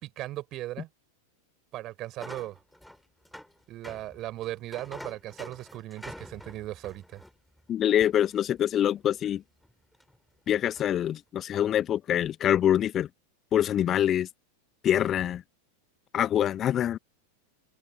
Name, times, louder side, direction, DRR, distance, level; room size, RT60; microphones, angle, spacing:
voice 1, 0.0-0.9 1.7-2.6 3.7-7.2, right 15 dB, 35° right, 5.2 m, -37 dB
sound 1, 2.2-8.6 9.0-9.1 9.6-10.2 10.5-11.1, equal, ahead, 5.5 m, -47 dB
voice 2, 7.7-9.4 10.5-13.1 13.5-14.3 14.8-15.4 16.1-17.0, left 10 dB, 30° left, 1.0 m, -25 dB
figure-of-eight pair, 90°, 0 cm